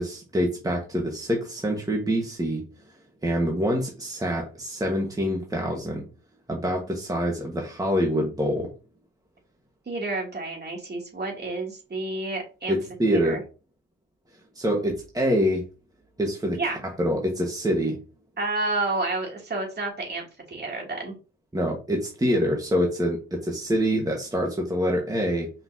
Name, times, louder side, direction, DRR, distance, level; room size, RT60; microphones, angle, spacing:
voice 1, 0.0-2.6 3.2-6.0 6.5-8.7 12.7-13.4 14.6-15.6 16.2-18.0 21.5-25.5, equal, 10° right, 0 dB, 1.7 m, -25 dB
voice 2, 9.9-12.8 13.0-13.4 16.5-16.8 18.4-21.2, right 2 dB, 35° right, -1 dB, 3.2 m, -30 dB
5.9 x 5.4 x 3.0 m, 0.32 s
cardioid pair, 90°, 30 cm